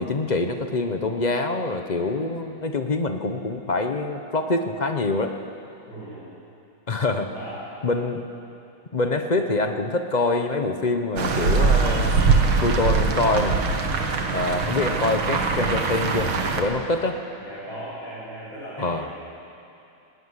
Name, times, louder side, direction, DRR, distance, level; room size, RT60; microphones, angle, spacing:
voice 1, 0.0-5.4 6.9-7.3 7.8-8.2 8.9-12.1 12.6-13.7 14.3-17.2 18.8-19.1, left 2 dB, 45° left, 6 dB, 0.5 m, -25 dB
voice 2, 5.9-6.2 7.3-7.6 17.4-18.9, right 1 dB, 75° left, -8 dB, 8.3 m, -37 dB
sound 1, 11.2-16.6, right 4 dB, 80° right, 2.3 m, -22 dB
18.5 x 17.5 x 9.8 m, 2.7 s
omnidirectional pair, 2.2 m